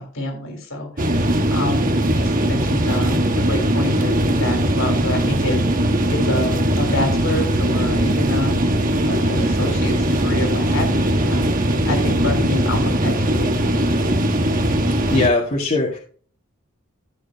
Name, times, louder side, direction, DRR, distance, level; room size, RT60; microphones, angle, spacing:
voice 1, 0.0-5.8 6.1-8.6 9.0-13.8, left 1 dB, 75° left, 3 dB, 3.8 m, -28 dB
sound 1, 1.0-15.3, right 1 dB, 40° right, 1.1 m, -19 dB
voice 2, 15.1-16.0, left 2 dB, 40° left, -4 dB, 1.9 m, -19 dB
14.0 x 6.6 x 2.9 m, 0.42 s
head